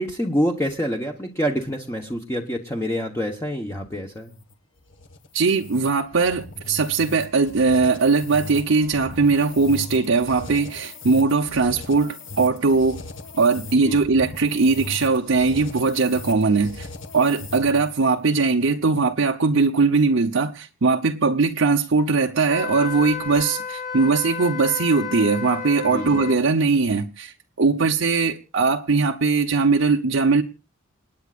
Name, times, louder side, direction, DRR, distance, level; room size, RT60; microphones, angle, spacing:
voice 1, 0.0-4.3 13.8-14.0 25.8-26.2, equal, 15° left, 1.1 m, -26 dB
sound 1, 4.2-18.0, left 2 dB, 70° left, 1.6 m, -39 dB
voice 2, 5.3-13.0 13.4-16.9 17.1-30.4, right 4 dB, 80° right, 0.8 m, -20 dB
Wind instrument woodwind instrument, 22.5-26.4, left 7 dB, 50° left, 4.2 m, -32 dB
28.5 x 9.5 x 2.5 m
head